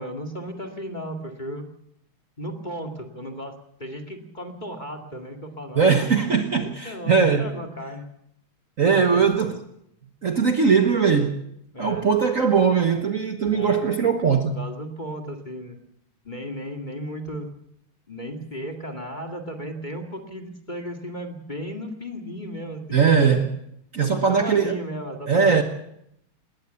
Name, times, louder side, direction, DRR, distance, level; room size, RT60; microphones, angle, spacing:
voice 1, 0.0-1.7 2.4-3.5 3.8-5.9 6.6-8.0 8.9-9.5 11.7-12.1 13.5-14.1 14.5-15.8 16.2-17.5 18.1-23.4 24.0-25.6, equal, 20° left, 2.1 m, -35 dB
voice 2, 5.8-7.6 8.8-9.6 10.2-11.4 11.8-14.6 22.9-23.5 23.9-24.8 25.3-25.6, right 6 dB, 45° right, 1.4 m, -20 dB
20.5 x 18.5 x 7.0 m
omnidirectional pair, 2.3 m